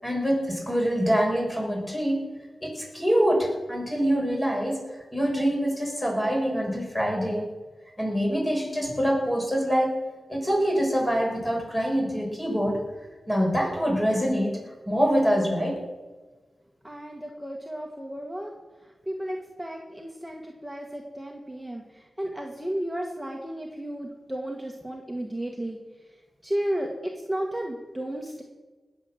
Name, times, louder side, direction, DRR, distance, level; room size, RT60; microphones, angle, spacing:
voice 1, 0.0-2.3 2.6-4.8 5.1-7.4 8.0-9.9 10.3-12.8 13.3-14.6 14.9-15.8, equal, 20° left, -1 dB, 6.4 m, -25 dB
voice 2, 16.8-18.5 19.1-25.8 26.4-28.4, right 1 dB, 5° right, 0 dB, 1.8 m, -33 dB
19.5 x 7.8 x 7.5 m, 1.3 s
cardioid pair, 60°, 0 cm